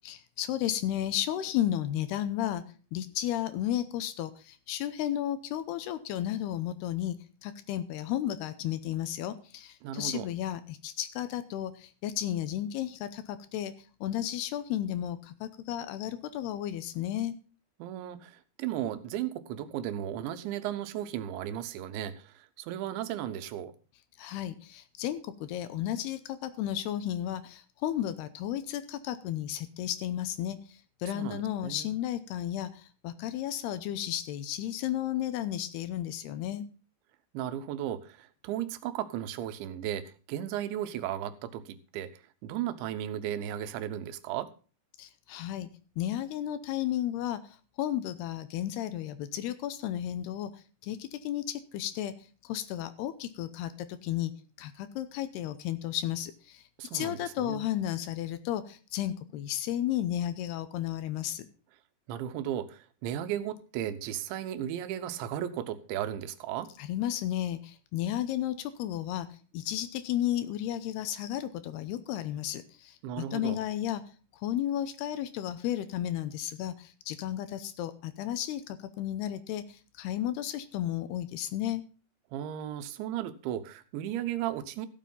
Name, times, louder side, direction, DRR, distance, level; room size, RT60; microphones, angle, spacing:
voice 1, 0.1-2.6 2.9-7.2 7.4-13.7 14.0-17.3 24.2-36.7 45.0-45.7 46.0-52.1 52.4-54.3 54.6-56.6 56.9-61.5 66.8-69.3 69.5-74.0 74.3-81.8, left 12 dB, 80° left, 2.6 m, -33 dB
voice 2, 9.8-10.3 17.8-23.7 31.1-31.9 37.3-42.1 42.4-44.5 56.8-57.7 62.1-66.7 73.0-73.6 82.3-84.9, right 11 dB, 90° right, 3.3 m, -35 dB
15.0 x 7.6 x 5.5 m
omnidirectional pair, 5.1 m